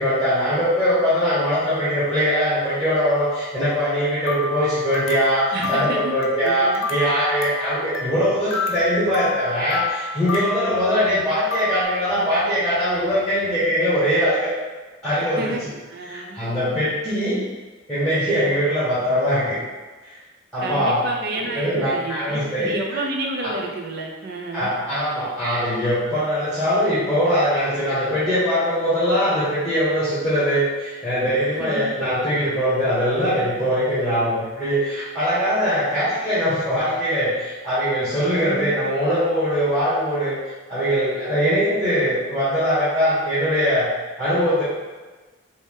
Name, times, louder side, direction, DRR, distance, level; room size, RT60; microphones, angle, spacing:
voice 1, 0.0-14.5 15.0-15.5 16.1-17.4 17.9-19.6 20.1-20.2 20.5-21.0 21.6-22.7 23.4-23.5 24.5-43.9 44.2-44.6, equal, ahead, -12 dB, 1.1 m, -21 dB
sound 1, 4.3-11.8, left 3 dB, 70° left, 0.4 m, -30 dB
voice 2, 5.5-6.1 6.4-6.9 10.6-10.8 15.4-15.6 15.9-16.8 20.6-24.7 31.5-31.8 38.3-38.8, right 2 dB, 50° right, 1 dB, 0.5 m, -30 dB
3.4 x 2.6 x 3.6 m, 1.3 s
head